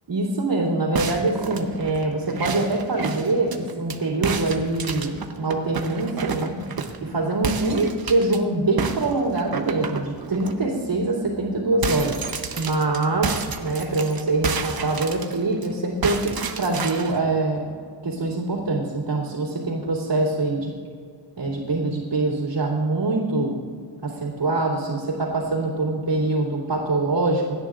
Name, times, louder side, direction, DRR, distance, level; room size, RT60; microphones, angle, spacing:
voice 1, 0.1-6.6 7.0-12.2 12.6-13.3 13.6-17.6 18.0-20.7 21.4-23.5 24.0-27.5, right 2 dB, 75° right, -8 dB, 3.1 m, -24 dB
sound 1, 1.0-4.0 4.2-7.1 7.4-8.4 8.8-10.5 11.0-11.1 11.4-15.7 16.0-17.2, right 5 dB, 55° right, 1.0 m, -30 dB
27.5 x 10.5 x 2.6 m, 2.1 s
wide cardioid pair, 120°, 44 cm